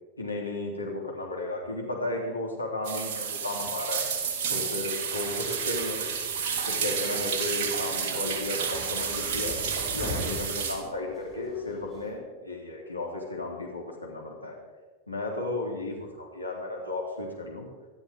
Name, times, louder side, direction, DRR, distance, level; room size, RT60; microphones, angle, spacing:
voice 1, 0.2-4.1 4.5-6.0 6.7-9.6 9.9-14.6 15.1-17.7, left 2 dB, 80° left, -1 dB, 3.5 m, -34 dB
sound 1, 2.8-10.7, right 6 dB, 45° right, 3.3 m, -30 dB
sound 2, 5.2-12.1, left 1 dB, 15° left, 6.8 m, -42 dB
24.5 x 12.5 x 3.8 m, 1.3 s
figure-of-eight pair, 90°, 0 cm